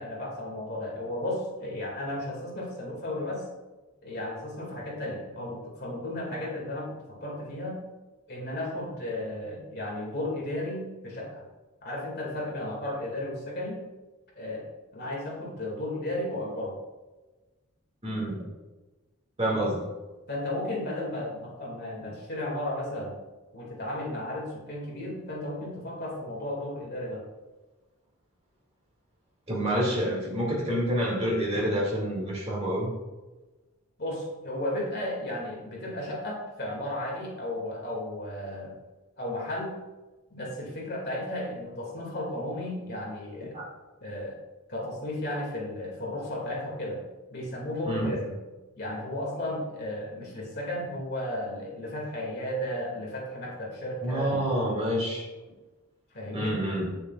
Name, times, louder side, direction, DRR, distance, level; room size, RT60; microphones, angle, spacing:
voice 1, 0.0-3.5 4.0-7.8 8.3-11.4 11.8-13.8 14.4-14.7 14.9-16.8 19.4-19.7 20.3-23.2 23.5-27.2 34.0-38.8 39.2-39.7 40.3-43.6 44.0-44.4 44.7-47.0 47.3-48.3 48.8-54.3 56.1-56.6, left 1 dB, 50° left, -3 dB, 2.3 m, -34 dB
voice 2, 18.0-18.4 19.4-19.8 29.5-32.9 43.5-43.7 47.9-48.1 54.0-55.3 56.3-56.9, equal, 30° right, -4 dB, 2.2 m, -28 dB
9.3 x 6.8 x 2.4 m, 1.2 s
head